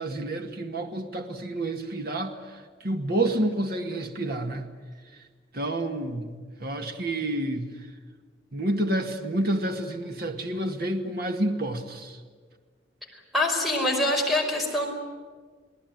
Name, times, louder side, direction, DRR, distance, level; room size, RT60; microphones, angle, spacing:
voice 1, 0.0-4.7 5.5-7.7 8.5-12.2, right 1 dB, 55° right, 5 dB, 2.0 m, -29 dB
voice 2, 13.3-14.9, left 1 dB, ahead, 1 dB, 5.3 m, -24 dB
29.0 x 18.5 x 9.4 m, 1.5 s
head